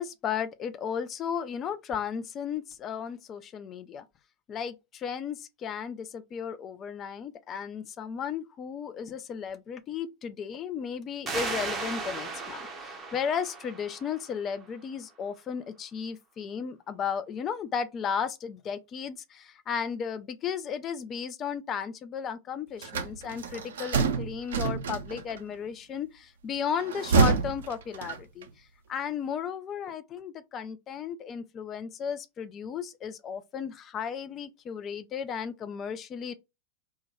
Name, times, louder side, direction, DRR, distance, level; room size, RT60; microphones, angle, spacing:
voice 1, 0.0-4.0 4.5-28.5 28.9-36.3, left 7 dB, 30° left, 0.3 m, -34 dB
sound 1, 11.3-14.6, right 4 dB, 20° right, 0.6 m, -36 dB
sound 2, 22.8-25.4 26.7-28.5, right 5 dB, 60° right, 0.5 m, -27 dB
2.2 x 2.2 x 2.9 m
figure-of-eight pair, 90°, 0 cm